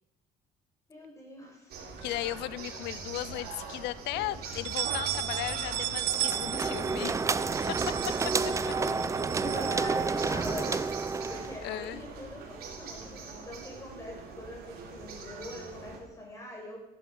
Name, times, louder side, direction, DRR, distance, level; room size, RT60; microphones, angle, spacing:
voice 1, 0.9-1.7 9.4-16.8, left 1 dB, 20° left, -2 dB, 6.5 m, -43 dB
sound 1, 1.7-16.0, right 4 dB, 65° right, 3.5 m, -42 dB
voice 2, 2.0-7.3 7.7-7.8 8.7-8.8 11.6-12.0, left 15 dB, 85° left, 18 dB, 0.6 m, -36 dB
sound 2, 2.0-2.9 3.3-3.4 3.8-3.9 4.4-10.7, right 14 dB, 85° right, 0.8 m, -36 dB
sound 3, 6.1-11.6, right 4 dB, 20° right, 0.5 m, -30 dB
14.5 x 11.0 x 5.8 m, 1.0 s
cardioid pair, 110°, 17 cm